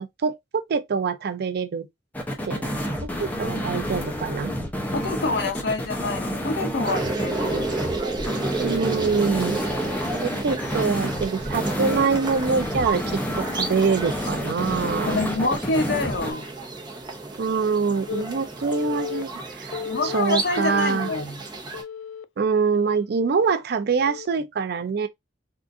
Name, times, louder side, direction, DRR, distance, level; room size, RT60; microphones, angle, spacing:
voice 1, 0.0-1.9 2.4-2.7 3.0-4.5 8.6-9.6 10.2-15.2 17.4-19.8 20.0-21.1 22.4-25.1, right 5 dB, 60° right, 0.4 m, -25 dB
sound 1, 2.1-16.3, equal, 10° left, 0.6 m, -29 dB
voice 2, 4.9-7.7 15.1-16.5 19.8-21.4, left 3 dB, 65° left, 0.8 m, -27 dB
sound 2, 6.8-21.8, right 3 dB, 25° right, 0.9 m, -32 dB
Telephone, 18.1-18.2 18.7-19.2 19.7-20.2 20.7-21.2 21.7-22.2 22.7-23.0 24.1-24.3, left 7 dB, 90° left, 0.3 m, -33 dB
3.7 x 2.5 x 2.4 m
head